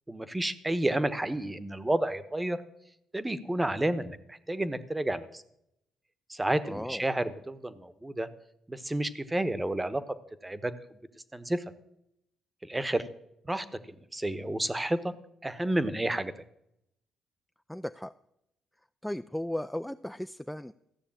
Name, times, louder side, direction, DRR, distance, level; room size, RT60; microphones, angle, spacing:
voice 1, 0.1-2.6 3.1-5.4 6.3-8.3 8.7-10.0 10.4-10.7 11.3-11.6 12.6-13.0 13.4-15.1 15.4-16.3, right 1 dB, 15° right, 14 dB, 1.0 m, -30 dB
voice 2, 6.6-7.1 17.7-18.1 19.0-20.7, left 1 dB, 5° left, 10 dB, 0.4 m, -36 dB
14.5 x 6.8 x 8.7 m, 0.78 s
cardioid pair, 90°, 0 cm